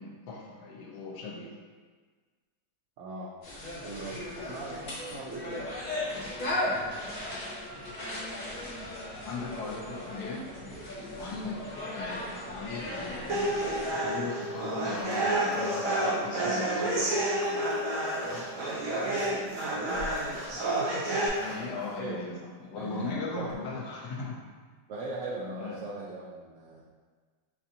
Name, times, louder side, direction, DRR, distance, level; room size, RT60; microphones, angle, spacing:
voice 1, 0.0-1.5 7.7-7.8 9.2-10.5 11.1-11.6 11.9-13.2 13.9-17.2 21.4-22.3 22.6-24.4 25.6-25.8, left 3 dB, 75° left, -1 dB, 1.2 m, -38 dB
voice 2, 3.0-3.3 3.8-5.7 18.2-19.4 19.7-21.2 22.0-22.2 22.8-23.2 23.6-23.8 24.9-26.8, right 2 dB, 85° right, -5 dB, 0.6 m, -40 dB
sound 1, 3.4-13.9, left 1 dB, 40° left, 1.0 m, -37 dB
sound 2, 13.3-21.3, right 1 dB, 60° right, 1.0 m, -30 dB
sound 3, 14.3-16.2 16.8-20.5 20.8-20.9 21.2-22.0 23.5-23.6, left 2 dB, 60° left, 1.0 m, -41 dB
4.7 x 2.6 x 2.7 m, 1.5 s
omnidirectional pair, 1.8 m